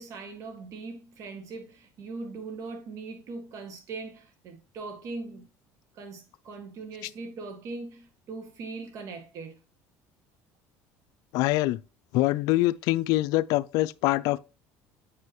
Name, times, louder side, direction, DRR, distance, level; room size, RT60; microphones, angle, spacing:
voice 1, 0.0-5.5 5.9-9.6, right 3 dB, 55° right, 2.0 m, -40 dB
voice 2, 11.3-11.8 12.1-14.4, left 17 dB, 70° left, 0.4 m, -24 dB
8.2 x 5.4 x 3.0 m
supercardioid pair, 105°, 6 cm